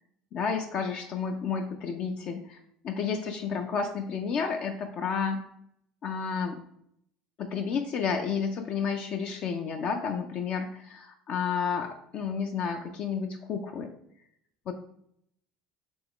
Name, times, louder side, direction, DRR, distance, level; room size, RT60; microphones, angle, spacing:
voice 1, 0.3-2.6 2.8-5.4 6.0-6.6 7.4-13.9 14.7-14.8, left 6 dB, 55° left, 3 dB, 0.4 m, -31 dB
3.5 x 3.1 x 3.5 m, 0.71 s
supercardioid pair, 85°, 3 cm